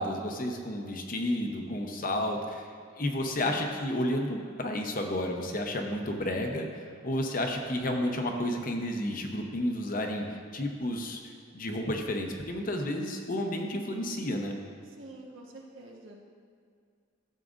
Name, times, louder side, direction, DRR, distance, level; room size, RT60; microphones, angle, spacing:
voice 1, 0.0-2.7 3.0-6.7 7.0-14.5, left 1 dB, 45° left, 3 dB, 0.8 m, -31 dB
voice 2, 3.4-3.8 15.0-16.2, right 1 dB, 85° right, -1 dB, 1.3 m, -46 dB
13.0 x 7.5 x 2.6 m, 2.2 s
head